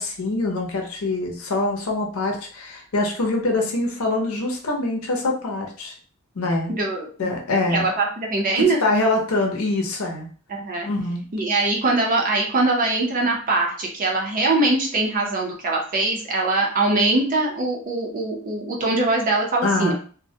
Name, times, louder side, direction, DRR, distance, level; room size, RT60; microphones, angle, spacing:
voice 1, 0.0-5.9 6.4-6.7 7.2-7.9 8.6-10.3 10.9-11.2 19.6-19.9, left 2 dB, 80° left, 1 dB, 0.6 m, -24 dB
voice 2, 6.8-7.3 7.7-8.8 10.5-10.9 11.3-19.9, right 2 dB, 40° right, 0 dB, 0.6 m, -22 dB
2.2 x 2.1 x 2.7 m, 0.42 s
head